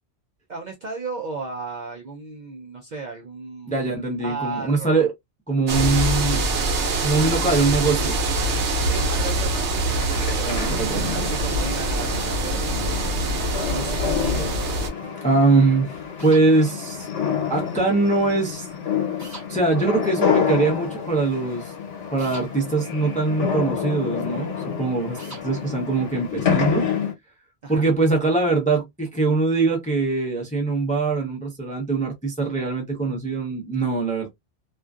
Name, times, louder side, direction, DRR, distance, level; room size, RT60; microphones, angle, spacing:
voice 1, 0.5-5.1 8.8-13.4 13.7-14.7 27.6-27.9, right 4 dB, 55° right, 0.5 m, -35 dB
voice 2, 3.7-5.1 5.5-6.5 7.0-8.2 10.4-11.1 15.2-15.9 16.2-17.1 17.5-18.7 19.5-21.7 22.1-26.9 27.7-34.3, right 3 dB, 10° left, 0.5 m, -22 dB
sound 1, 5.7-14.9, right 2 dB, 75° right, 1.0 m, -24 dB
sound 2, 9.0-27.1, left 7 dB, 90° left, 1.1 m, -28 dB
sound 3, 16.2-16.5 19.2-19.5 22.2-22.5 25.2-25.5, right 3 dB, 15° right, 0.9 m, -40 dB
2.4 x 2.3 x 2.3 m
omnidirectional pair, 1.2 m